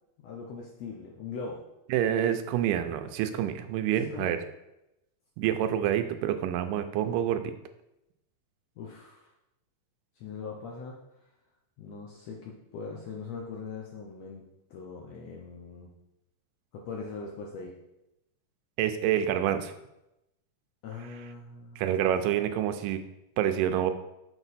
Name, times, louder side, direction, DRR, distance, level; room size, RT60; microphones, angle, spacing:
voice 1, 0.2-1.6 4.0-4.4 8.8-9.3 10.2-11.0 11.8-14.4 14.7-15.9 16.7-17.8 20.8-22.0, left 4 dB, 75° left, -1 dB, 1.6 m, -41 dB
voice 2, 1.9-4.4 5.4-7.4 18.8-19.7 21.8-23.0 23.4-23.9, right 10 dB, 90° right, 9 dB, 2.2 m, -27 dB
6.9 x 4.4 x 4.1 m, 0.89 s
omnidirectional pair, 3.8 m